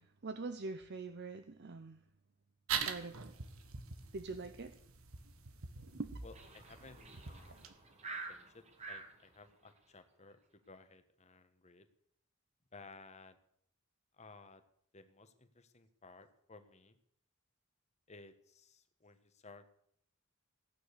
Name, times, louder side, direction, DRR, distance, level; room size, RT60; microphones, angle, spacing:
voice 1, 0.0-2.0 2.8-3.3 4.1-4.7 5.8-6.1, right 3 dB, 55° right, 11 dB, 0.7 m, -44 dB
sound 1, 2.7-7.7, right 6 dB, 90° right, 1.5 m, -43 dB
voice 2, 6.2-7.7 8.3-11.9 12.7-13.4 14.1-14.6 14.9-17.0 18.1-19.7, left 3 dB, 35° left, 9 dB, 1.3 m, -57 dB
sound 2, 6.3-9.1, right 3 dB, 35° right, 2.2 m, -48 dB
16.0 x 9.0 x 6.7 m, 0.68 s
head